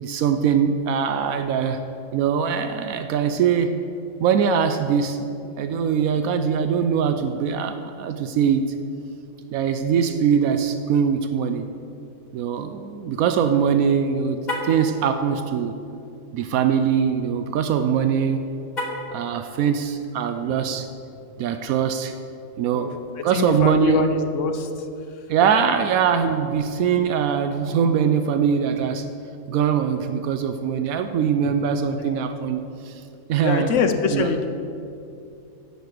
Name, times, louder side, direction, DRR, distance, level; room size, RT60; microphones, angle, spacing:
voice 1, 0.0-1.8 2.1-3.8 4.2-5.2 5.6-8.6 9.5-11.7 12.3-15.8 16.3-18.4 19.1-20.9 21.4-22.1 22.6-23.0 23.2-24.1 25.3-29.0 29.5-33.0 33.3-33.7 34.1-34.3, right 7 dB, 80° right, 8 dB, 1.0 m, -22 dB
Car, 14.4-14.8 18.7-19.2, left 1 dB, 35° left, 1.4 m, -29 dB
voice 2, 23.2-24.7 31.4-31.5 32.0-32.2 33.4-34.5, left 5 dB, 65° left, 7 dB, 1.0 m, -24 dB
10.5 x 5.7 x 7.7 m, 2.6 s
omnidirectional pair, 1.5 m